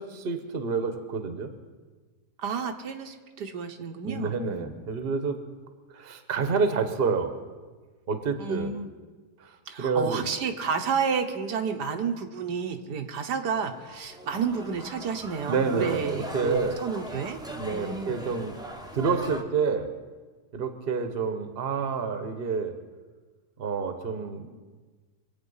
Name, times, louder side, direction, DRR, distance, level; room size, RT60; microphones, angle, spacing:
voice 1, 0.0-1.5 4.0-5.4 5.9-7.3 8.1-8.7 9.4-10.2 15.5-16.8 17.5-18.5 18.9-19.9 20.5-22.7 23.6-24.6, right 5 dB, 40° right, 8 dB, 1.2 m, -28 dB
voice 2, 2.4-4.7 8.4-8.9 9.7-17.4 17.7-18.2, right 6 dB, 80° right, 5 dB, 1.6 m, -31 dB
sound 1, 13.6-19.4, equal, 5° right, 0.9 m, -41 dB
24.0 x 8.7 x 5.5 m, 1.4 s
omnidirectional pair, 1.8 m